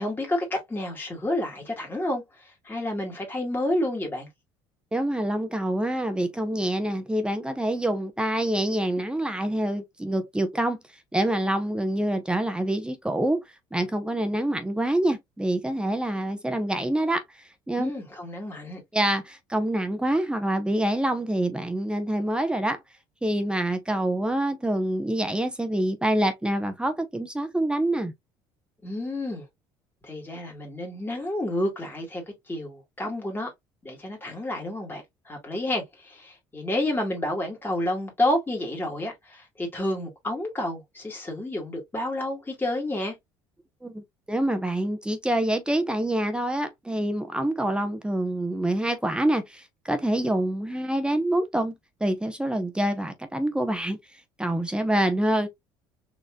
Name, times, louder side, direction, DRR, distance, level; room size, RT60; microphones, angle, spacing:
voice 1, 0.0-4.3 17.8-18.8 28.8-29.5 30.0-33.5 33.8-43.2, left 1 dB, 20° left, 2.0 m, -30 dB
voice 2, 4.9-10.8 11.1-13.4 13.7-17.2 17.7-17.9 18.9-22.8 23.2-28.1 43.8-54.0 54.4-55.5, right 1 dB, 10° right, 0.9 m, -26 dB
4.1 x 3.2 x 2.3 m
supercardioid pair, 75°, 11 cm